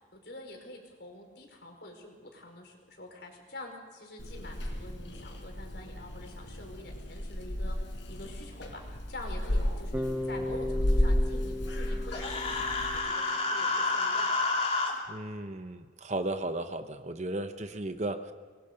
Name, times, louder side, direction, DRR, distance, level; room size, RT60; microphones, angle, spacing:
voice 1, 0.1-14.3, left 1 dB, 60° left, 2 dB, 4.9 m, -46 dB
Purr / Meow, 4.2-13.0, left 1 dB, 75° left, 4.9 m, -33 dB
Bass guitar, 9.9-14.0, left 1 dB, 10° right, 0.9 m, -37 dB
Human voice, 12.1-14.9, left 3 dB, 30° left, 2.9 m, -29 dB
voice 2, 15.1-18.3, right 2 dB, 35° right, 8 dB, 1.0 m, -35 dB
25.0 x 22.0 x 5.3 m, 1.5 s
head